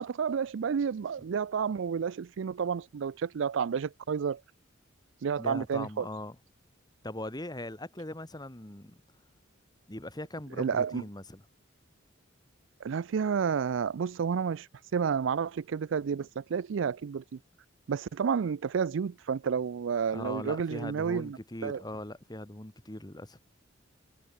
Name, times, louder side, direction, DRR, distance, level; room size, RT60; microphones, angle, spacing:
voice 1, 0.0-4.4 5.2-6.1 10.6-11.0 12.8-14.7 14.9-17.4 17.9-21.4 21.6-21.8, right 6 dB, 70° right, 0.4 m, -30 dB
voice 2, 5.4-6.4 7.0-9.0 9.9-11.4 20.1-23.4, left 1 dB, 20° left, 2.2 m, -40 dB
head